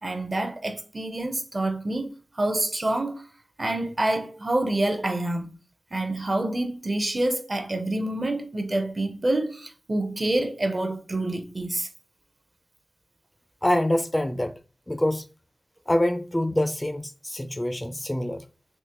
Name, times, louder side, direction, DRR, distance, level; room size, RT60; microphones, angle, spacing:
voice 1, 0.0-3.2 3.6-5.5 5.9-11.9, right 1 dB, 35° right, 0.5 m, -27 dB
voice 2, 13.6-14.5 14.9-15.2 15.9-18.4, left 1 dB, 20° left, 0.3 m, -25 dB
3.6 x 2.8 x 2.8 m
wide cardioid pair, 65°, 0 cm